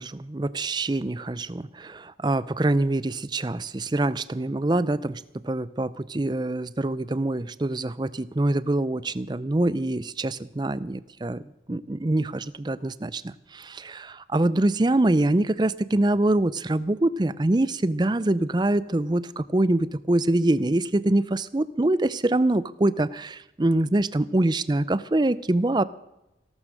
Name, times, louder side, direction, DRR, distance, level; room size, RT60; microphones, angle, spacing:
voice 1, 0.0-11.4 11.7-25.8, right 2 dB, 25° right, 17 dB, 0.5 m, -24 dB
17.0 x 12.5 x 6.5 m, 0.92 s
head